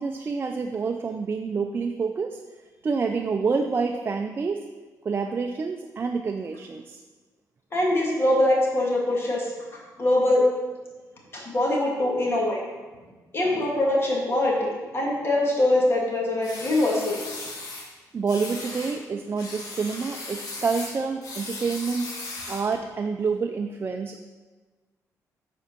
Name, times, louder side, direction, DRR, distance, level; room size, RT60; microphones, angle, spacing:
voice 1, 0.0-2.4 2.8-4.6 5.0-7.0 18.1-22.1 22.5-24.2, right 5 dB, 35° right, 4 dB, 0.4 m, -28 dB
voice 2, 7.7-10.5 11.3-12.6 13.3-17.2, left 1 dB, 40° left, -2 dB, 2.1 m, -23 dB
sound 1, 16.4-17.9 18.3-19.0 19.4-22.7, left 2 dB, 75° left, 1.8 m, -37 dB
8.2 x 4.5 x 6.1 m, 1.3 s
cardioid pair, 115°, 7 cm